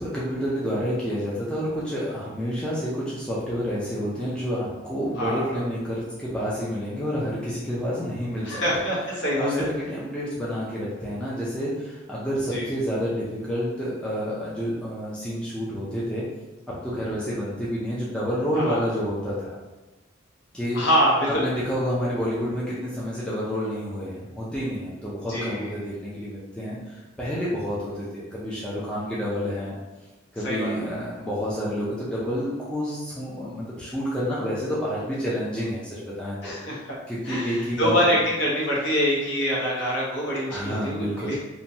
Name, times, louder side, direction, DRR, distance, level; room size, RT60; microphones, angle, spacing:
voice 1, 0.0-8.6 9.3-16.3 16.7-19.6 20.5-20.8 21.3-29.7 30.3-36.5 36.8-38.1 40.5-41.3, equal, 5° left, -8 dB, 0.4 m, -29 dB
voice 2, 5.2-5.6 8.4-9.6 12.5-12.7 18.6-18.8 20.7-21.4 25.3-25.7 30.4-30.8 36.4-36.8 37.2-41.3, equal, 60° left, -5 dB, 0.8 m, -25 dB
2.9 x 2.2 x 2.6 m, 1.1 s
head